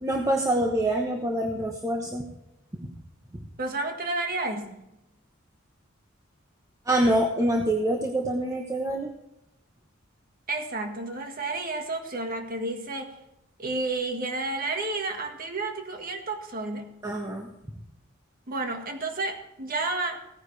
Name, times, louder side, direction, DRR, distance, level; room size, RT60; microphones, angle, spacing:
voice 1, 0.0-2.2 6.9-9.1 17.0-17.5, right 1 dB, 15° right, 1 dB, 1.0 m, -25 dB
voice 2, 3.6-4.9 10.5-13.1 13.6-16.9 18.5-20.2, right 2 dB, 45° right, 4 dB, 1.6 m, -31 dB
16.5 x 9.9 x 3.3 m, 0.90 s
head